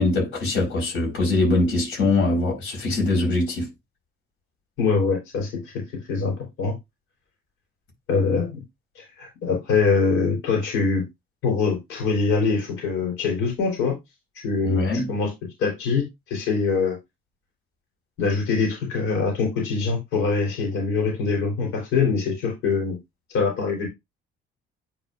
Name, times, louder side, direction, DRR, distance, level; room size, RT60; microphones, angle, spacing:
voice 1, 0.0-3.7 14.7-15.1, left 2 dB, 65° left, 4.1 m, -22 dB
voice 2, 4.8-5.8 6.1-6.8 8.1-8.6 9.0-11.0 11.4-14.0 14.4-15.3 15.6-17.0 18.2-23.0 23.3-23.9, left 4 dB, 90° left, 3.6 m, -23 dB
9.7 x 4.3 x 2.5 m
cardioid pair, 130°, 21 cm